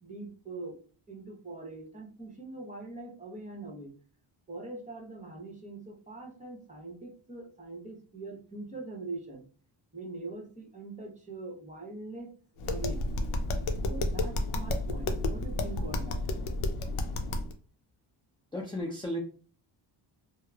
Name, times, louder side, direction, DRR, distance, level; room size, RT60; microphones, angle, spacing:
voice 1, 0.0-0.8 1.1-3.9 4.5-9.4 9.9-12.3 12.7-13.1 13.8-16.2, right 3 dB, 15° right, -1 dB, 0.9 m, -42 dB
Tap, 12.6-17.5, left 2 dB, 80° left, 0.6 m, -31 dB
voice 2, 18.5-19.2, equal, 10° left, -1 dB, 0.5 m, -34 dB
2.9 x 2.0 x 2.3 m, 0.39 s
cardioid pair, 80°, 49 cm